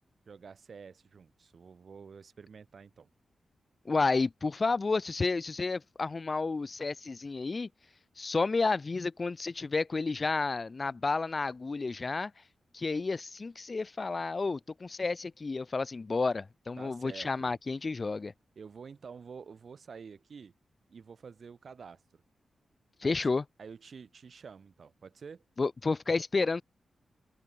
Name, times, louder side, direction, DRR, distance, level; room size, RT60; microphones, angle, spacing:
voice 1, 0.3-3.1 16.8-17.6 18.5-20.5 20.9-22.2 23.0-23.3 23.6-25.4, right 6 dB, 65° right, 3.3 m, -49 dB
voice 2, 3.9-7.7 8.2-12.3 12.7-18.3 23.0-23.4 25.6-26.6, left 3 dB, 40° left, 0.4 m, -31 dB
cardioid pair, 60°, 0 cm